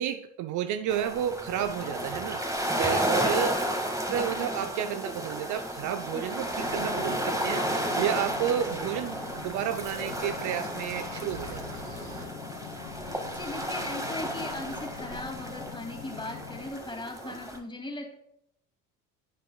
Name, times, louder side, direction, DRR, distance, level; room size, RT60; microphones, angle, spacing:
voice 1, 0.0-2.4 2.8-3.7 4.0-11.8 17.2-17.4, right 10 dB, 50° right, 10 dB, 0.6 m, -31 dB
sound 1, 0.9-17.6, right 1 dB, 10° right, 1.9 m, -33 dB
voice 2, 4.3-4.7 13.0-18.1, left 2 dB, 15° left, 1 dB, 2.5 m, -39 dB
sound 2, 6.2-12.3, right 3 dB, 85° right, 1.7 m, -46 dB
sound 3, 6.6-16.7, left 8 dB, 75° left, 1.2 m, -44 dB
11.0 x 8.8 x 2.3 m, 0.77 s
hypercardioid pair, 60°, 38 cm